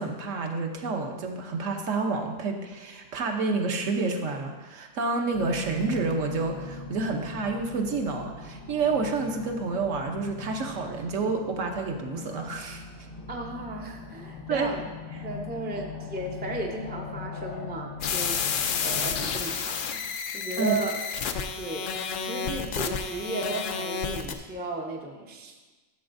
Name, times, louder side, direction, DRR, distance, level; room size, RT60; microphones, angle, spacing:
voice 1, 0.0-12.8 14.5-14.7 20.6-20.8, right 3 dB, 65° right, 3 dB, 1.1 m, -29 dB
sound 1, 5.3-19.3, left 3 dB, 50° left, 0.7 m, -41 dB
voice 2, 13.3-14.8 15.2-20.0 20.3-20.9 21.6-25.7, right 2 dB, 15° right, 1 dB, 0.4 m, -35 dB
sound 2, 18.0-24.3, left 6 dB, 80° left, 0.4 m, -30 dB
12.0 x 6.9 x 2.6 m, 1.2 s
omnidirectional pair, 1.5 m